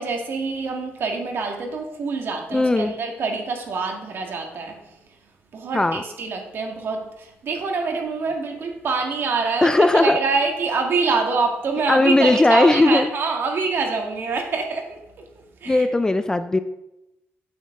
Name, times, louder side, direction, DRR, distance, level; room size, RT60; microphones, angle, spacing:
voice 1, 0.0-4.8 5.5-15.0 15.6-15.9, right 4 dB, 55° right, 3 dB, 1.6 m, -25 dB
voice 2, 2.5-2.9 5.7-6.0 9.6-10.2 11.9-13.1 15.7-16.6, left 2 dB, 15° left, 10 dB, 0.4 m, -17 dB
8.5 x 8.5 x 3.6 m, 0.91 s
cardioid pair, 125°, 5 cm